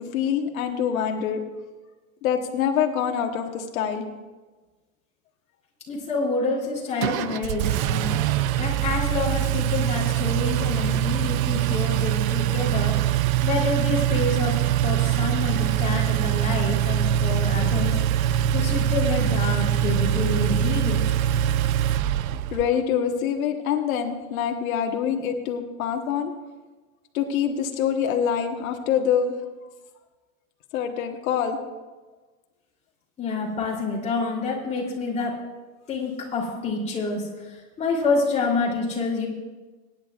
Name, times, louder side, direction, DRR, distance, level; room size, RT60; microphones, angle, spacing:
voice 1, 0.0-1.4 2.2-4.0 22.5-26.3 27.1-29.3 30.7-31.6, left 8 dB, 85° left, 4 dB, 1.4 m, -25 dB
voice 2, 5.9-8.2 8.6-12.9 13.4-21.0 33.2-35.3 35.9-39.3, left 3 dB, 15° left, -4 dB, 3.1 m, -28 dB
Engine, 7.0-22.7, right 11 dB, 85° right, 0.6 m, -23 dB
22.5 x 10.5 x 2.4 m, 1.3 s
supercardioid pair, 165°, 40 cm